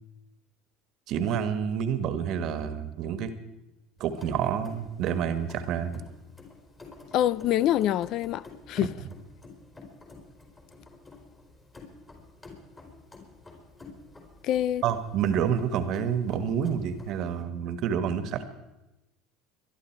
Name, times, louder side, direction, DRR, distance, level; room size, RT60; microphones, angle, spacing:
voice 1, 1.1-3.3 4.0-6.0 14.8-18.4, right 8 dB, 55° right, 1.5 m, -28 dB
sound 1, 4.0-17.4, left 3 dB, 25° left, 4.2 m, -50 dB
voice 2, 7.1-8.9 14.4-14.8, left 12 dB, 55° left, 0.4 m, -25 dB
23.0 x 11.5 x 4.6 m
hypercardioid pair, 85°, 0 cm